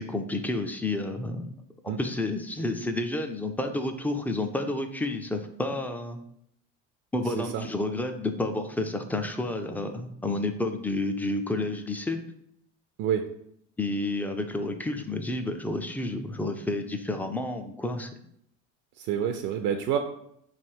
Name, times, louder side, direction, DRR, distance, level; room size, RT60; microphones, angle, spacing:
voice 1, 0.0-1.5 1.8-6.2 7.1-12.2 13.8-18.1, left 2 dB, 5° left, 6 dB, 0.3 m, -30 dB
voice 2, 13.0-13.3 19.0-20.0, right 9 dB, 55° right, 6 dB, 0.5 m, -27 dB
3.4 x 3.3 x 4.5 m, 0.72 s
supercardioid pair, 105°, 35 cm